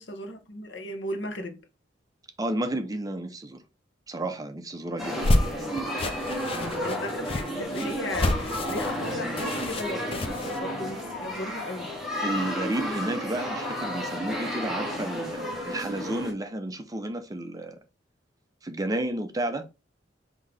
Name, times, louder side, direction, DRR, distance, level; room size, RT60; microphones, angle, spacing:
voice 1, 0.0-1.6 6.8-11.9, left 1 dB, 65° left, 0.9 m, -36 dB
voice 2, 2.4-3.6 4.1-6.0 12.2-17.8 18.6-19.7, right 1 dB, 20° right, 0.5 m, -32 dB
sound 1, 5.0-10.6, left 1 dB, 30° left, 0.5 m, -29 dB
sound 2, 5.0-16.3, equal, ahead, 1.0 m, -32 dB
5.7 x 2.7 x 3.3 m
head